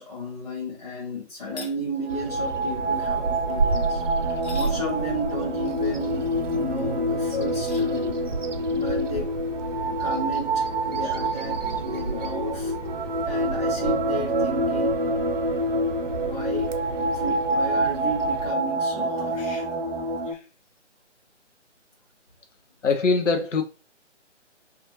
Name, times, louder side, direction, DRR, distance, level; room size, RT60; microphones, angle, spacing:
voice 1, 0.0-4.0 4.5-8.2 8.7-9.3 10.0-12.8 13.2-15.0 16.2-19.7, equal, 35° left, 0.7 m, -33 dB
sound 1, 1.4-1.8 4.3-4.8 7.5-7.9, left 4 dB, 65° left, 1.1 m, -42 dB
sound 2, 1.9-20.3, right 1 dB, 50° right, 0.6 m, -27 dB
Bird vocalization bird call bird song, 2.1-18.5, right 3 dB, 85° right, 0.7 m, -33 dB
voice 2, 22.8-23.6, left 4 dB, 80° left, 0.6 m, -23 dB
3.4 x 2.5 x 2.9 m
figure-of-eight pair, 145°, 36 cm